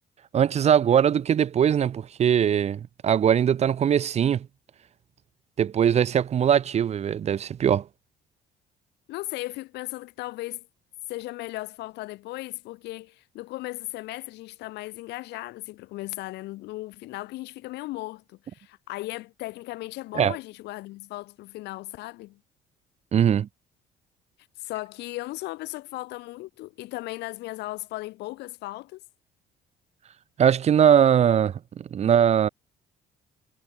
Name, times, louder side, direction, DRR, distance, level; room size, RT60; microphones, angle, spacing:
voice 1, 0.3-4.5 5.6-7.9 20.1-20.4 23.1-23.5 30.4-32.5, right 9 dB, 40° right, 0.7 m, -21 dB
voice 2, 9.1-10.7 11.1-22.4 24.6-29.0, left 18 dB, 85° left, 1.6 m, -36 dB
cardioid pair, 110°, 17 cm